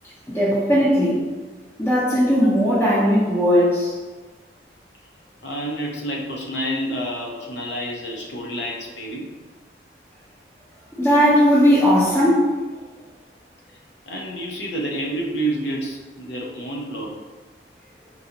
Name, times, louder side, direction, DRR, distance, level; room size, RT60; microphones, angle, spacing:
voice 1, 0.3-1.3 1.8-3.9 11.0-12.5, equal, 15° left, -9 dB, 0.6 m, -17 dB
voice 2, 5.4-9.3 14.1-17.1, right 1 dB, 85° left, -1 dB, 0.6 m, -29 dB
3.9 x 2.4 x 2.8 m, 1.3 s
head